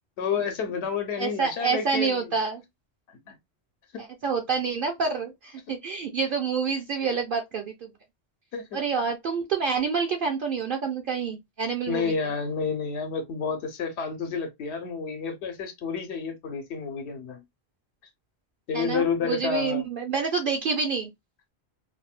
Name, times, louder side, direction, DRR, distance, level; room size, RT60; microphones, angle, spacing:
voice 1, 0.2-2.3 3.1-3.4 3.9-4.0 8.5-8.8 11.9-17.4 18.7-19.8, left 5 dB, 80° left, 1.0 m, -30 dB
voice 2, 1.2-2.6 4.0-7.9 8.7-12.1 18.7-21.1, right 5 dB, 60° right, 0.7 m, -28 dB
3.3 x 2.1 x 2.4 m
omnidirectional pair, 1.1 m